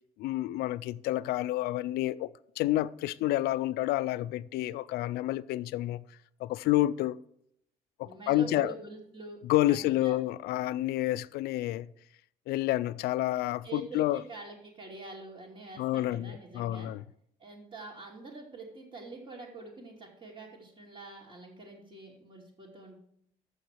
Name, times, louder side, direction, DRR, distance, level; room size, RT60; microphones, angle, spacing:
voice 1, 0.2-6.0 6.4-7.2 8.0-8.7 9.5-11.9 12.5-14.2 15.8-17.0, left 15 dB, 75° left, 0.4 m, -29 dB
voice 2, 8.0-9.4 9.7-10.2 13.6-16.9 17.4-23.0, right 3 dB, 35° right, 2.6 m, -45 dB
7.2 x 6.3 x 7.5 m
supercardioid pair, 70°, 16 cm